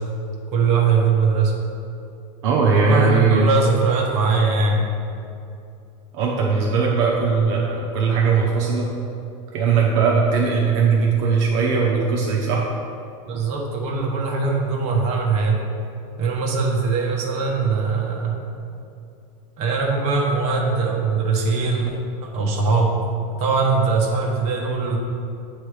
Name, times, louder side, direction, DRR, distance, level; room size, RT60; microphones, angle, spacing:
voice 1, 0.5-1.5 2.7-4.8 13.3-15.6 16.2-18.4 19.6-21.9 22.2-22.9 23.3-25.0, right 4 dB, 40° right, -2 dB, 1.2 m, -21 dB
voice 2, 2.4-3.5 6.1-8.9 9.5-12.7, right 5 dB, 65° right, -2 dB, 0.9 m, -19 dB
8.6 x 3.3 x 4.9 m, 2.6 s
supercardioid pair, 155°, 17 cm